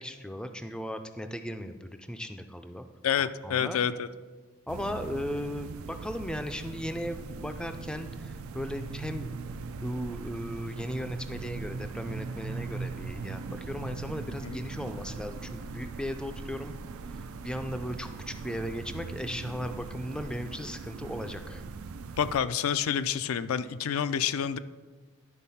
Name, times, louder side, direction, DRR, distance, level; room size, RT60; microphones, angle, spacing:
voice 1, 0.0-2.8 3.2-3.8 4.7-9.3 9.8-16.7 17.4-21.6, equal, 5° left, 7 dB, 0.3 m, -37 dB
voice 2, 3.0-4.1 14.4-14.6 22.2-24.6, left 8 dB, 80° left, 13 dB, 0.4 m, -28 dB
sound 1, 4.7-22.4, right 4 dB, 80° right, 0.4 m, -40 dB
11.0 x 4.1 x 5.6 m, 1.3 s
head